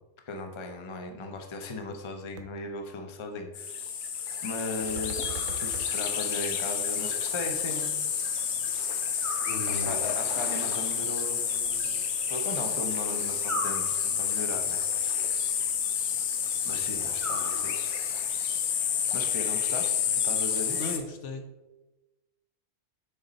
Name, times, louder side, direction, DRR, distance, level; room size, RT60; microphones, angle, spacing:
voice 1, 0.3-3.8 4.4-7.9 9.7-12.0 12.3-15.4 16.6-18.0 19.1-20.9, left 2 dB, 35° left, 4 dB, 0.4 m, -37 dB
sound 1, 1.4-1.5 1.8-2.1 2.4-2.5 4.8-5.9, right 6 dB, 75° right, 1.0 m, -41 dB
sound 2, 3.5-21.0, left 8 dB, 80° left, 1.2 m, -29 dB
sound 3, 5.3-6.1 9.2-10.2 13.4-14.5 17.2-18.2, right 1 dB, 25° right, 1.0 m, -39 dB
voice 2, 9.4-10.1 20.8-21.5, left 2 dB, 60° left, 6 dB, 0.9 m, -36 dB
6.5 x 4.1 x 4.0 m, 1.1 s
omnidirectional pair, 1.5 m